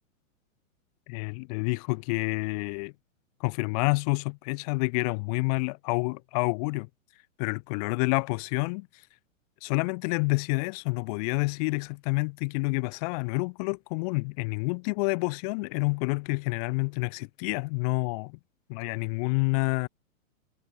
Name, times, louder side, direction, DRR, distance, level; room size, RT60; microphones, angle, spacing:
voice 1, 1.1-2.9 3.4-6.9 7.4-8.9 9.6-18.4 18.7-19.9, left 30 dB, 30° left, 4.0 m, -28 dB
hypercardioid pair, 170°, 40 cm